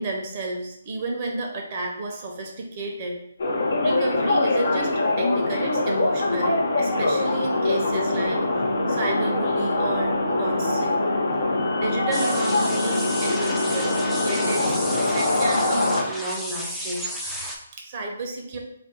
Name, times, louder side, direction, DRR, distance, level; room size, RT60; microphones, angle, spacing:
voice 1, 0.0-3.2 3.8-8.6 8.9-11.1 11.7-18.6, right 2 dB, 40° right, 0 dB, 0.6 m, -32 dB
sound 1, 3.4-16.0, left 2 dB, 60° left, 0.5 m, -23 dB
sound 2, 12.1-17.6, equal, ahead, 0.4 m, -33 dB
2.5 x 2.3 x 3.8 m, 0.73 s
figure-of-eight pair, 145°, 0 cm